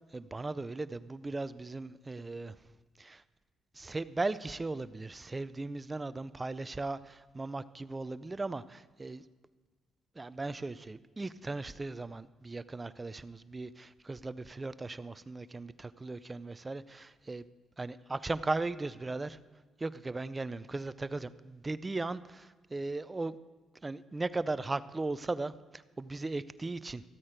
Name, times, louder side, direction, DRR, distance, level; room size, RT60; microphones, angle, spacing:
voice 1, 0.1-2.6 3.0-3.2 3.7-9.2 10.2-17.4 17.8-19.4 19.8-23.4 23.8-27.0, right 3 dB, 20° right, 15 dB, 0.5 m, -37 dB
14.0 x 8.7 x 5.0 m, 1.4 s
cardioid pair, 85°, 0 cm